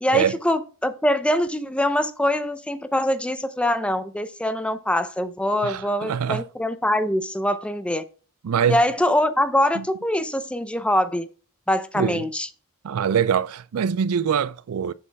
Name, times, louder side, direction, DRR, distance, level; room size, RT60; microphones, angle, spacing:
voice 1, 0.0-8.0 8.7-11.3 11.7-12.5, left 1 dB, 5° left, 0.6 m, -23 dB
voice 2, 5.6-6.4 8.4-8.8 9.8-9.9 12.0-12.2 12.8-14.9, right 7 dB, 75° right, 0.4 m, -23 dB
7.0 x 6.8 x 3.4 m
head